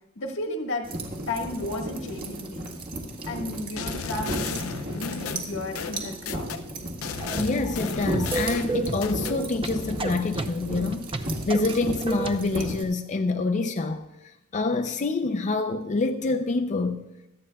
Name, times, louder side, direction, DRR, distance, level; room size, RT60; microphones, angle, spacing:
voice 1, 0.1-0.9 1.3-2.7 3.3-6.5, left 2 dB, 65° left, 1.5 m, -33 dB
sound 1, 0.8-12.8, right 1 dB, 45° right, 1.8 m, -34 dB
sound 2, 3.8-6.6 7.0-9.4, left 6 dB, 80° left, 0.6 m, -34 dB
sound 3, 7.2-12.4, right 3 dB, 25° right, 0.6 m, -32 dB
voice 2, 7.4-17.0, left 3 dB, 35° left, 0.5 m, -27 dB
25.5 x 8.7 x 2.3 m
head